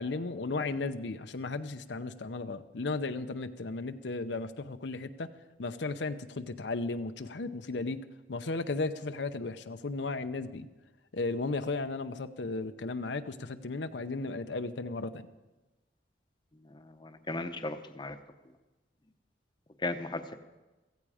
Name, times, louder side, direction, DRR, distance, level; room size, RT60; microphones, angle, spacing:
voice 1, 0.0-5.3 5.6-8.0 8.3-10.7 11.1-15.3, left 3 dB, 75° left, 9 dB, 0.7 m, -35 dB
voice 2, 16.7-18.2 19.8-20.3, left 2 dB, 25° left, 7 dB, 0.9 m, -36 dB
16.5 x 15.0 x 4.9 m, 1.1 s
head